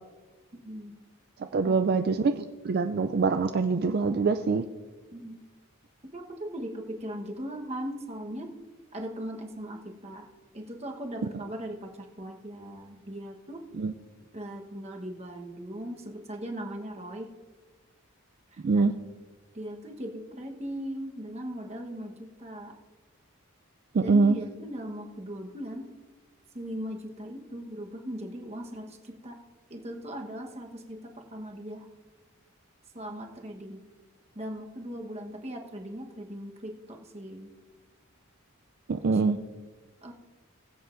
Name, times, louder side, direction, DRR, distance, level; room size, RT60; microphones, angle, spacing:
voice 1, 0.5-1.0 1.7-1.8 5.1-5.4 6.1-8.6 8.9-10.3 10.5-13.6 14.3-17.3 18.5-18.9 19.5-22.7 24.0-25.9 26.5-29.4 29.7-31.8 32.9-33.8 34.3-37.5 39.1-39.2 40.0-40.1, equal, 30° right, 2 dB, 1.1 m, -39 dB
voice 2, 1.5-4.6 13.8-13.9 18.6-18.9 23.9-24.4 38.9-39.4, right 4 dB, 45° right, 8 dB, 0.3 m, -24 dB
21.0 x 7.9 x 2.6 m, 1.3 s
head